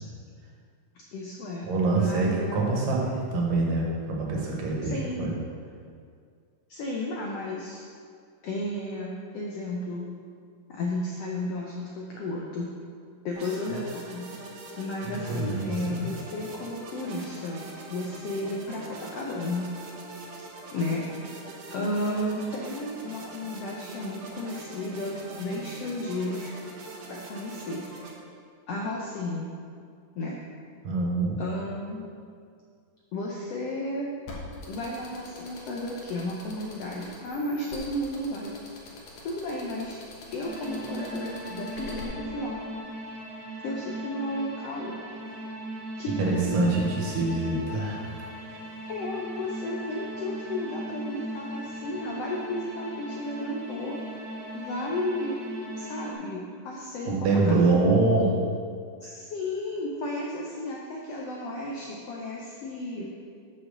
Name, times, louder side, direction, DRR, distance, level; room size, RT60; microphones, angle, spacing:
voice 1, 1.1-3.0 4.8-5.3 6.7-7.9 8.4-10.1 10.7-12.7 13.2-14.3 14.8-17.6 17.9-19.7 20.7-21.1 21.7-26.5 27.1-27.9 28.7-29.5 30.2-30.4 31.4-32.1 33.1-34.1 34.6-38.5 39.2-40.0 40.3-42.6 43.6-45.0 46.0-46.5 48.9-54.0 54.5-55.4 55.8-58.3 59.0-63.1, left 1 dB, 80° left, -3 dB, 1.4 m, -33 dB
voice 2, 1.6-5.3 15.1-16.1 30.8-31.4 46.2-48.0 57.0-58.3 59.0-59.1, right 3 dB, 85° right, -2 dB, 3.0 m, -25 dB
sound 1, 13.3-28.1, right 2 dB, 65° right, 1.9 m, -43 dB
sound 2, 34.3-42.0, left 3 dB, 65° left, 2.5 m, -44 dB
sound 3, 40.4-56.1, right 1 dB, 45° right, 2.5 m, -38 dB
7.1 x 5.4 x 6.6 m, 2.2 s
omnidirectional pair, 3.8 m